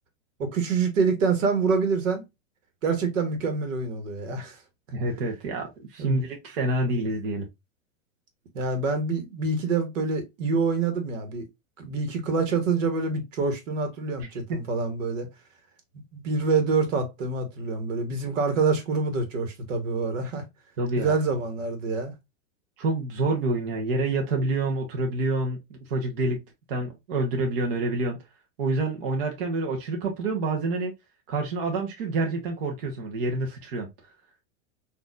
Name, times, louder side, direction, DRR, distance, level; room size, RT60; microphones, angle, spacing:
voice 1, 0.4-2.2 2.8-4.6 6.0-6.2 8.5-11.4 11.8-15.3 16.1-20.4 21.0-22.1, right 4 dB, 75° right, 1.3 m, -26 dB
voice 2, 4.9-7.5 14.5-14.6 20.8-21.1 22.8-26.4 26.7-28.2 28.6-30.9 31.3-33.9, right 2 dB, 45° right, 0.9 m, -27 dB
4.2 x 2.6 x 2.3 m
supercardioid pair, 180°, 38 cm